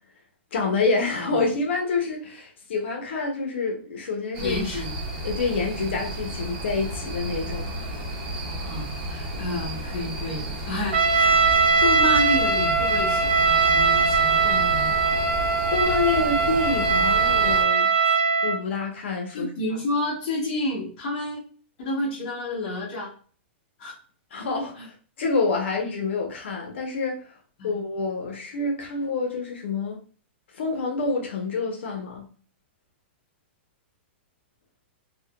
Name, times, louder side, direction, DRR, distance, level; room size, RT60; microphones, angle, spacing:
voice 1, 0.5-4.6 5.2-7.7 15.7-17.9 18.4-19.8 24.3-27.4 27.6-30.0 30.5-32.2, left 3 dB, 70° left, 0.7 m, -27 dB
sound 1, 4.3-17.6, right 1 dB, 45° right, 0.9 m, -32 dB
voice 2, 4.4-4.9 8.6-11.4 11.8-15.1 19.3-21.4 21.8-23.1 23.8-23.9 24.8-24.9 27.6-27.7, left 2 dB, 40° left, 0.9 m, -30 dB
Trumpet, 10.9-18.6, right 5 dB, 65° right, 0.5 m, -21 dB
3.4 x 2.1 x 2.2 m
hypercardioid pair, 170°, 6 cm